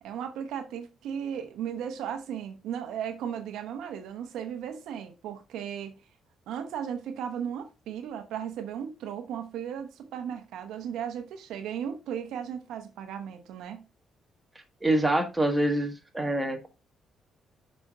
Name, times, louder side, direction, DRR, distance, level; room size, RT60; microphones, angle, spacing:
voice 1, 0.0-5.9 6.5-13.8, right 8 dB, 85° right, 0.9 m, -36 dB
voice 2, 14.8-16.7, right 1 dB, 10° right, 1.6 m, -26 dB
6.3 x 5.2 x 3.6 m
cardioid pair, 90°, 0 cm